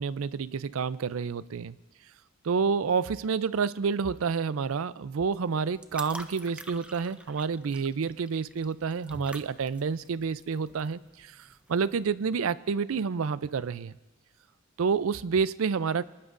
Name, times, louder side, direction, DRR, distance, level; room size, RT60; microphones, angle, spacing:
voice 1, 0.0-1.8 2.4-11.4 11.7-13.9 14.8-16.0, right 5 dB, 80° right, 17 dB, 0.4 m, -29 dB
sound 1, 5.3-12.0, right 1 dB, 5° right, 0.5 m, -46 dB
25.0 x 19.0 x 2.6 m, 1.2 s
head